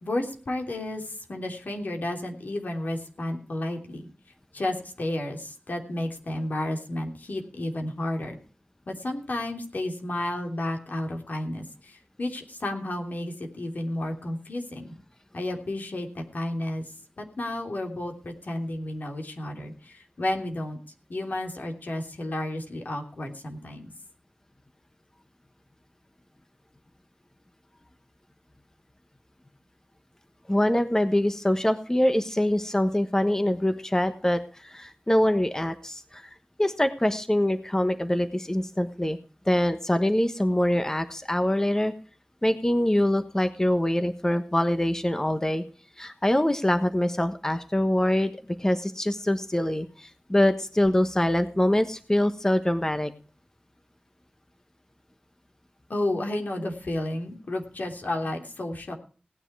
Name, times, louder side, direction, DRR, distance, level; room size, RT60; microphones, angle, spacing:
voice 1, 0.0-4.1 4.5-8.3 8.9-14.9 15.3-20.8 21.1-23.9 55.9-59.0, left 1 dB, 80° left, 2 dB, 3.3 m, -32 dB
voice 2, 30.5-36.3 36.6-39.2 39.5-41.9 42.4-45.6 46.0-48.3 48.6-53.1, left 1 dB, 20° left, 9 dB, 1.2 m, -24 dB
17.5 x 9.9 x 4.7 m, 0.39 s
wide cardioid pair, 80°, 3 cm